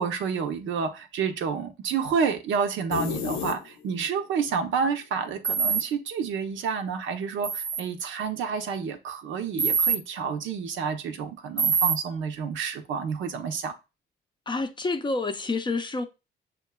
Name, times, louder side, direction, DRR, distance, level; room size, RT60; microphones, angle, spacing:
voice 1, 0.0-13.7, right 6 dB, 80° right, 0.7 m, -29 dB
sound 1, 2.9-4.1, left 8 dB, 85° left, 0.7 m, -32 dB
sound 2, 5.4-5.8 7.4-7.8 9.6-10.0 11.6-12.0, right 6 dB, 35° right, 0.6 m, -24 dB
voice 2, 14.5-16.0, left 3 dB, 25° left, 0.5 m, -28 dB
6.2 x 2.2 x 2.2 m
cardioid pair, 90°, 20 cm